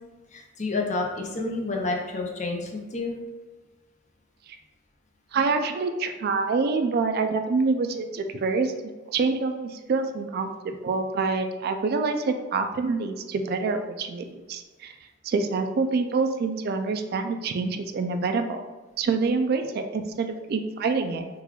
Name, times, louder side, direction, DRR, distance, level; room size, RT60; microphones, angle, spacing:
voice 1, 0.3-3.1, left 3 dB, 35° left, 1 dB, 0.5 m, -29 dB
voice 2, 5.3-14.9 15.2-18.7 19.0-21.3, right 4 dB, 50° right, 6 dB, 0.3 m, -26 dB
3.8 x 2.3 x 3.0 m, 1.3 s
head